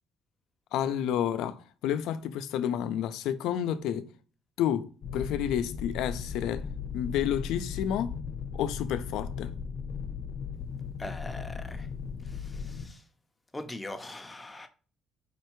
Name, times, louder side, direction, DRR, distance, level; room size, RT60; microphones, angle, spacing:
voice 1, 0.7-4.0 4.6-4.9 5.1-6.6 6.9-8.1 8.5-9.5, left 10 dB, 85° left, 0.4 m, -30 dB
sound 1, 5.0-12.9, left 6 dB, 55° left, 0.8 m, -37 dB
voice 2, 11.0-11.9 12.4-13.0 13.5-14.7, left 1 dB, 10° left, 0.5 m, -41 dB
5.3 x 3.2 x 3.0 m
cardioid pair, 170°, 0 cm